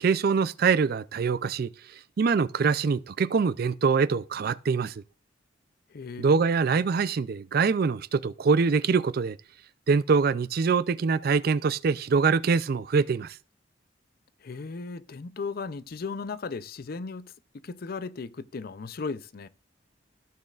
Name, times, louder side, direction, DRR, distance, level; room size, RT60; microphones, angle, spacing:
voice 1, 0.0-1.7 2.2-5.0 6.2-9.4 9.9-13.4, right 5 dB, 55° right, 0.4 m, -24 dB
voice 2, 5.9-6.4 14.4-17.3 17.6-19.5, left 4 dB, 55° left, 0.5 m, -36 dB
14.5 x 6.5 x 2.4 m
head